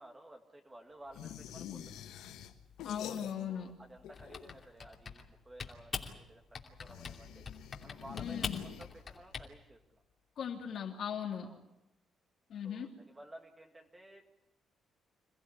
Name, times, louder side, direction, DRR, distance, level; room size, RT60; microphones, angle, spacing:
voice 1, 0.0-2.0 3.5-7.5 7.8-10.0 11.4-11.7 12.6-14.3, right 1 dB, 20° right, 2 dB, 2.2 m, -54 dB
sound 1, 1.1-3.7 4.0-4.8 6.8-9.3, left 10 dB, 85° left, 1.5 m, -47 dB
voice 2, 2.8-3.7 8.2-8.6 10.4-11.5 12.5-12.9, left 8 dB, 65° left, 1 dB, 3.2 m, -38 dB
Typing, 4.1-5.3 5.6-6.1 6.5-7.2 7.5-9.5, left 5 dB, 40° left, 2.8 m, -42 dB
27.0 x 15.0 x 9.8 m, 0.91 s
cardioid pair, 90°, 0 cm